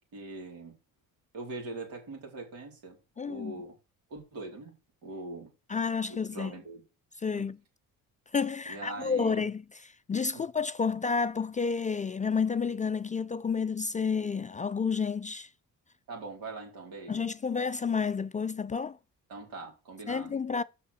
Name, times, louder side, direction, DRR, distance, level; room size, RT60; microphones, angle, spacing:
voice 1, 0.1-0.8 1.3-3.0 3.3-3.8 4.1-4.7 5.0-5.5 6.3-6.8 7.3-7.5 8.7-9.4 10.3-10.4 16.1-17.1 19.3-20.3, right 3 dB, 80° right, 4.1 m, -42 dB
voice 2, 3.2-3.5 5.7-6.5 7.2-7.6 8.3-15.5 17.1-19.0 20.1-20.6, left 5 dB, 20° left, 0.3 m, -30 dB
6.5 x 5.7 x 6.4 m
cardioid pair, 90°, 34 cm